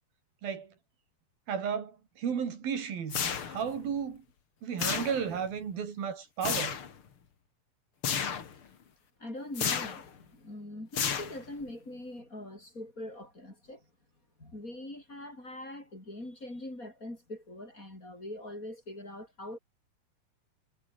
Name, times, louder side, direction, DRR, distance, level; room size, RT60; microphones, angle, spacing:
voice 1, 0.4-0.7 1.5-4.2 4.6-6.8, right 7 dB, 75° right, 5.1 m, -34 dB
sound 1, 3.1-3.8 4.8-5.5 6.4-6.9 8.0-8.5 9.5-10.1 10.9-11.6, left 7 dB, 40° left, 2.5 m, -32 dB
voice 2, 9.2-13.9 14.4-19.6, left 1 dB, 20° left, 6.8 m, -43 dB
omnidirectional pair, 4.3 m